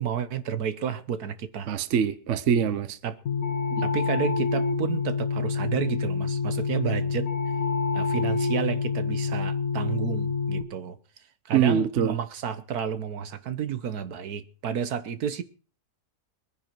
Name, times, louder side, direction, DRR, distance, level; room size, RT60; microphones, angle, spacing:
voice 1, 0.0-1.7 3.0-3.2 3.8-7.3 7.9-11.0 11.5-15.4, right 8 dB, 75° right, 1.5 m, -31 dB
voice 2, 1.7-3.0 3.7-3.9 11.5-12.2, right 8 dB, 55° right, 1.1 m, -24 dB
sound 1, 3.3-10.6, left 5 dB, 65° left, 1.5 m, -27 dB
22.0 x 9.9 x 4.5 m
omnidirectional pair, 1.7 m